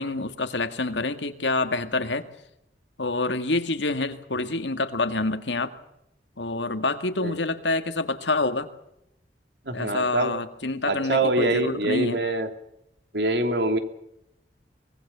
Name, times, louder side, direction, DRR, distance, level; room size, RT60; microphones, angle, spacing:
voice 1, 0.0-2.3 3.0-5.7 6.4-8.7 9.7-12.2, left 2 dB, 85° left, 9 dB, 1.9 m, -27 dB
voice 2, 9.6-10.3 10.9-12.5 13.1-13.8, right 2 dB, 70° right, 7 dB, 2.8 m, -24 dB
24.0 x 20.0 x 6.9 m, 0.83 s
head